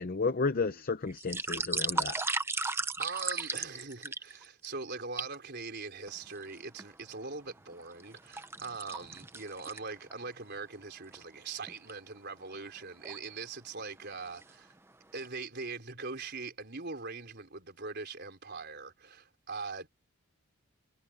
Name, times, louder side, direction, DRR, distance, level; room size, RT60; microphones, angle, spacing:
voice 1, 0.0-2.2, left 4 dB, 40° left, 0.6 m, -32 dB
sound 1, 1.1-4.7 5.2-5.4 6.1-6.9 7.4-10.2 10.6-10.7 11.1-11.2 11.7-11.9 12.8-13.3 13.8-14.0 14.3-14.9 15.3-15.4, right 3 dB, 10° right, 0.6 m, -35 dB
voice 2, 3.0-14.7 15.1-19.9, right 4 dB, 45° right, 4.4 m, -42 dB
head